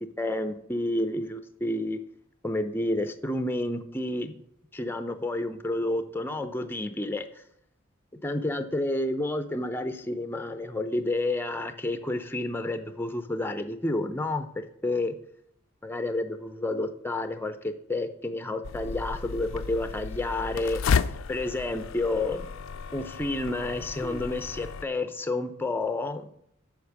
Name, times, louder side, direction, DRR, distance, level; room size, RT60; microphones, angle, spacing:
voice 1, 0.2-2.0 2.4-4.3 4.7-7.4 8.2-15.2 15.8-22.5 22.9-26.3, left 2 dB, 10° left, 8 dB, 0.5 m, -30 dB
sound 1, 18.6-24.8, left 6 dB, 75° left, 0.4 m, -32 dB
8.4 x 5.1 x 6.0 m, 0.71 s
head